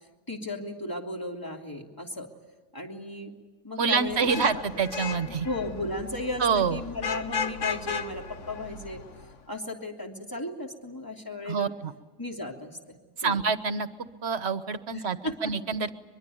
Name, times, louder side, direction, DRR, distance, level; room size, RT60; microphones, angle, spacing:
voice 1, 0.3-2.3 2.7-3.3 3.6-4.6 5.0-9.0 9.5-11.7 12.2-13.4 14.9-15.5, left 2 dB, 15° left, 1 dB, 3.1 m, -35 dB
voice 2, 3.8-5.5 6.4-6.8 11.5-11.9 13.2-13.9 14.2-15.9, right 5 dB, 60° right, 11 dB, 1.4 m, -27 dB
Vehicle horn car horn honking / Traffic noise roadway noise, 4.1-9.3, left 6 dB, 85° left, 1.5 m, -36 dB
23.5 x 23.0 x 9.4 m, 1.3 s
omnidirectional pair, 1.2 m